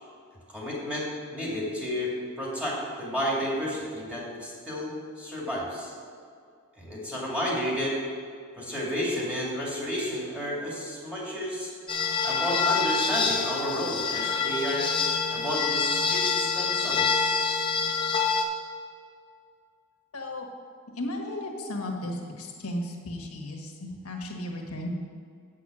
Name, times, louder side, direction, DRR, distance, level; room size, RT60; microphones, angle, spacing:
voice 1, 0.5-2.1 2.4-5.9 6.8-7.9 8.6-11.7 12.2-14.9 15.3-17.6, equal, 5° right, -5 dB, 2.4 m, -31 dB
sound 1, 11.9-18.4, left 5 dB, 20° left, 0.9 m, -26 dB
voice 2, 20.1-20.5 21.0-23.7 24.0-24.9, left 1 dB, 85° left, 2 dB, 1.4 m, -34 dB
8.3 x 6.1 x 6.2 m, 2.2 s
head